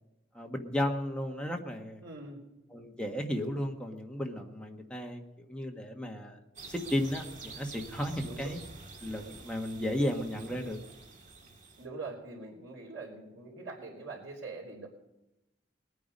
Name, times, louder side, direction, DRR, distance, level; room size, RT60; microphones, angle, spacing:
voice 1, 0.3-2.0 2.7-6.4 6.7-8.6 9.0-10.8, left 1 dB, 5° left, 1 dB, 1.5 m, -34 dB
voice 2, 2.0-2.5 8.2-8.5 10.5-10.7 11.8-14.9, right 3 dB, 85° right, -7 dB, 3.7 m, -43 dB
sound 1, 6.6-11.9, right 3 dB, 40° right, 1.9 m, -48 dB
20.0 x 9.5 x 5.3 m, 0.96 s
head